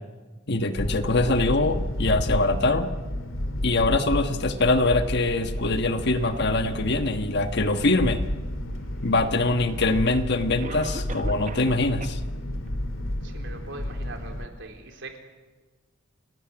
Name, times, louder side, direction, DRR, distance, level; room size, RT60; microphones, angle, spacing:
voice 1, 0.5-2.9 3.6-8.2 9.0-12.2, left 2 dB, 55° left, 8 dB, 1.3 m, -23 dB
sound 1, 0.8-14.5, left 1 dB, 80° left, 2.3 m, -31 dB
Cough, 9.5-9.6 10.6-11.7 12.0-12.1 12.7-12.8 13.3-13.4, right 3 dB, 40° right, 1.2 m, -38 dB
voice 2, 13.2-15.2, right 2 dB, 65° right, 4 dB, 3.9 m, -41 dB
29.0 x 18.0 x 8.7 m, 1.3 s
head